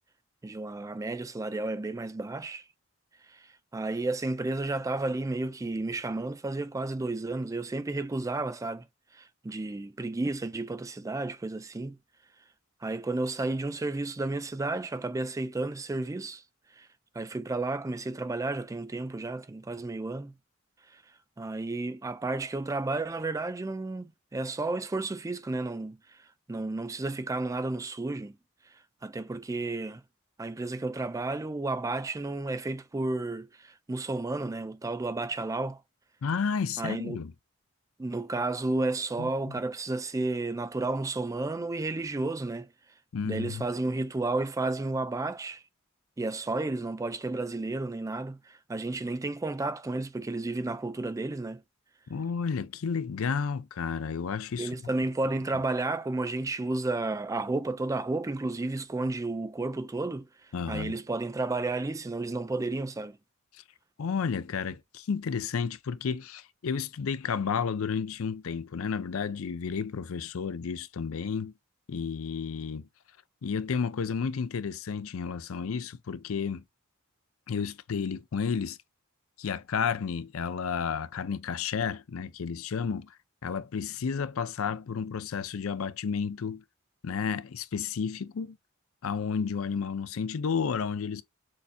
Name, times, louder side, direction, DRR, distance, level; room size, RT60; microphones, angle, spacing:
voice 1, 0.4-2.6 3.3-8.8 9.1-12.0 12.8-16.4 16.8-16.9 17.1-20.3 20.9-21.0 21.4-26.2 26.5-28.4 29.0-30.0 30.4-35.8 36.8-37.2 38.0-42.7 43.2-45.6 46.2-51.6 54.6-60.3 60.7-63.2, right 2 dB, 15° right, 0.3 m, -32 dB
voice 2, 36.2-37.3 39.2-39.6 43.1-43.7 52.1-54.7 60.5-61.0 64.0-71.5 71.9-72.9 73.4-76.6 77.5-78.8 79.4-83.1 83.4-86.6 87.0-88.6 89.0-91.2, left 6 dB, 75° left, 0.5 m, -32 dB
6.4 x 2.7 x 2.2 m
head